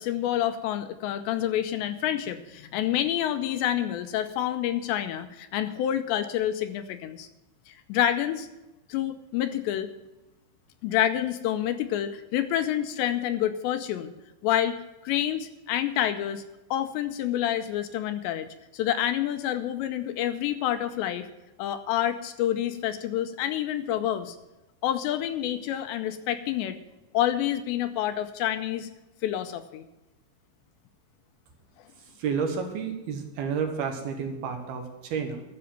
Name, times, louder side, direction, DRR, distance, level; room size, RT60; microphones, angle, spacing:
voice 1, 0.0-7.3 7.7-8.5 8.9-9.9 10.8-14.1 14.4-14.8 15.0-16.4 16.7-18.5 18.7-21.3 21.6-24.4 24.8-26.8 27.1-28.9 29.2-29.8, left 11 dB, 80° left, 9 dB, 2.9 m, -28 dB
voice 2, 32.2-35.4, right 6 dB, 65° right, 4 dB, 3.0 m, -30 dB
13.0 x 6.9 x 9.2 m, 1.0 s
omnidirectional pair, 5.3 m